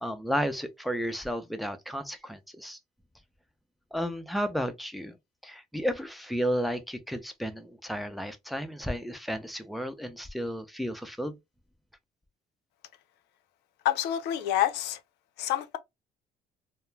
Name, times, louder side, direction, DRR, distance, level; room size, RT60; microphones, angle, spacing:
voice 1, 0.0-2.8 3.9-5.1 5.4-11.4, equal, ahead, 0.4 m, -33 dB
voice 2, 13.8-15.0 15.4-15.8, left 12 dB, 80° left, 0.5 m, -27 dB
2.2 x 2.1 x 3.1 m
cardioid pair, 110°, 17 cm